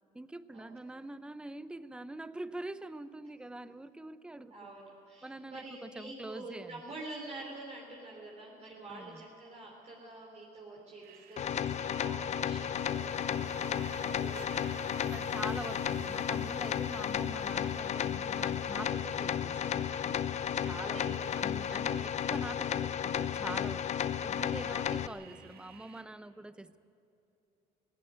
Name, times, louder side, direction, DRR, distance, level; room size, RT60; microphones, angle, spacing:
voice 1, 0.1-4.7 5.2-7.0 8.9-9.2 15.1-20.2 20.6-26.8, right 2 dB, 5° right, 14 dB, 0.6 m, -44 dB
voice 2, 4.5-14.7 20.7-21.5, right 2 dB, 40° right, -3 dB, 4.0 m, -47 dB
sound 1, 11.0-26.0, right 8 dB, 65° right, 1.7 m, -57 dB
sound 2, 11.4-25.1, left 9 dB, 40° left, 0.5 m, -33 dB
sound 3, 11.7-22.4, right 12 dB, 90° right, 0.7 m, -53 dB
17.5 x 17.0 x 9.7 m, 2.7 s
cardioid pair, 110°, 17 cm